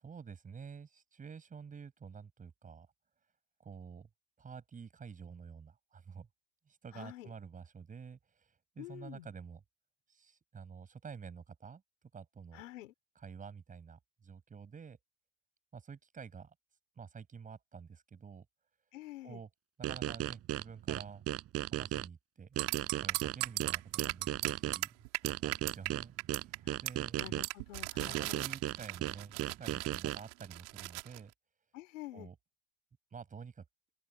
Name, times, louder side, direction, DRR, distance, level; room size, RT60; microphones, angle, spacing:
voice 1, 0.0-2.9 3.6-4.1 4.4-6.3 6.7-8.2 8.8-9.6 10.1-11.8 12.1-12.6 13.2-15.0 15.7-16.5 17.0-18.5 19.2-19.5 19.8-21.2 21.7-22.6 22.9-25.0 25.2-26.2 26.4-27.4 28.1-31.3 32.1-32.4 33.1-33.6, right 6 dB, 20° right, 7.6 m, -49 dB
voice 2, 6.9-7.3 8.8-9.3 12.5-12.9 18.9-19.4 26.7-26.8 27.2-28.5 31.7-32.3, left 15 dB, 80° left, 4.0 m, -48 dB
sound 1, 19.8-22.1 22.6-24.8 25.2-27.5 28.0-30.2, right 13 dB, 40° right, 4.3 m, -35 dB
sound 2, 22.6-25.9 26.2-26.6 26.9-27.0 27.2-31.2, right 27 dB, 65° right, 3.4 m, -38 dB
open air
supercardioid pair, 120°, 37 cm